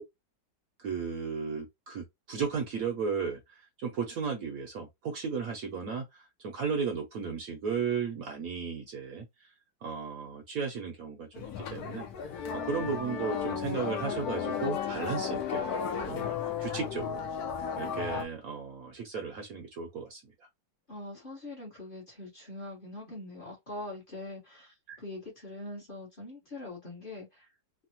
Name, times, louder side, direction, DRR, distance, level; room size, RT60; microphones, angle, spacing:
voice 1, 0.8-3.4 3.8-9.3 9.8-12.1 12.5-15.6 16.1-17.2 17.8-20.2 24.9-25.0, right 5 dB, 65° right, 0.9 m, -35 dB
Orchestra prepare to play, 11.3-18.2, left 7 dB, 70° left, 1.0 m, -34 dB
voice 2, 20.9-27.5, left 2 dB, 35° left, 1.0 m, -43 dB
3.2 x 2.1 x 2.7 m
omnidirectional pair, 1.9 m